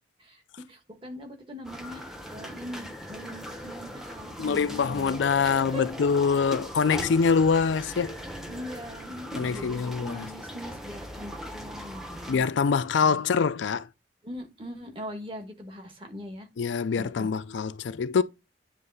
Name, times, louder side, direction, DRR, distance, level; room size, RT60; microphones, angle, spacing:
voice 1, 0.7-5.2 5.4-5.8 7.9-8.0 8.5-12.4 14.2-16.5 17.0-17.3, left 1 dB, 25° right, 1.4 m, -41 dB
sound 1, 1.6-12.4, equal, ahead, 0.8 m, -39 dB
voice 2, 4.4-8.2 9.3-10.3 12.3-13.9 16.6-18.2, left 5 dB, 70° left, 0.4 m, -24 dB
9.4 x 3.2 x 3.9 m
head